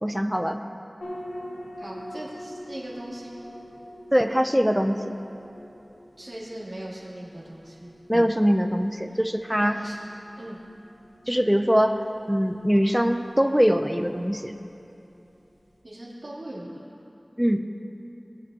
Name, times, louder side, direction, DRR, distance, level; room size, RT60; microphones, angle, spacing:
voice 1, 0.0-0.6 4.1-5.1 8.1-9.8 11.3-12.0 12.3-14.5 17.4-17.6, equal, 5° right, 7 dB, 0.6 m, -22 dB
sound 1, 1.0-15.8, equal, 90° left, 1.1 m, -45 dB
voice 2, 1.8-3.5 6.2-7.9 9.6-10.0 10.4-10.6 15.8-16.8, right 1 dB, 70° right, -7 dB, 3.0 m, -39 dB
22.0 x 7.9 x 2.9 m, 2.9 s
wide cardioid pair, 50°, 0 cm